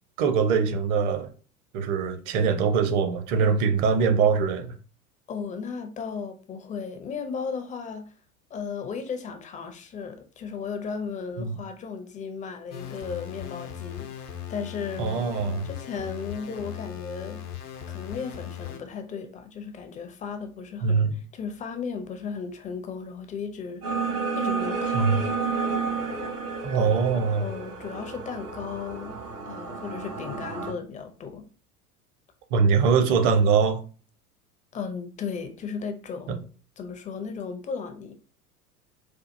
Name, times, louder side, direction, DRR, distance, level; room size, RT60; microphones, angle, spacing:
voice 1, 0.2-1.3 1.7-4.7 11.4-11.6 15.0-15.7 20.8-21.1 24.9-25.2 26.6-27.5 32.5-33.8 36.3-36.4, right 5 dB, 45° right, 0.7 m, -22 dB
voice 2, 5.3-8.1 8.5-15.3 15.6-17.4 17.9-25.1 26.7-29.2 29.5-31.4 34.7-36.3 36.8-38.1, left 5 dB, 20° left, 0.5 m, -35 dB
sound 1, 12.7-18.8, left 10 dB, 85° left, 0.7 m, -38 dB
sound 2, 23.8-30.7, right 5 dB, 70° right, 1.9 m, -31 dB
4.5 x 2.3 x 2.5 m
figure-of-eight pair, 85°, 44 cm